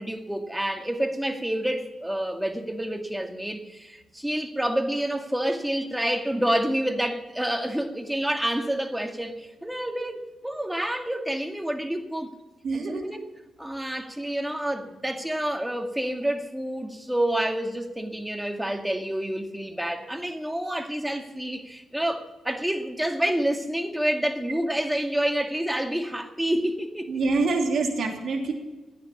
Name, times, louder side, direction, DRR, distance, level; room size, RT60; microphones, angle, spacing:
voice 1, 0.0-12.3 12.7-13.2 13.6-27.1, right 1 dB, 5° right, 2.2 m, -28 dB
voice 2, 12.6-13.0 27.1-28.5, right 3 dB, 60° right, 2.9 m, -25 dB
15.5 x 9.6 x 7.2 m
hypercardioid pair, 40°, 0 cm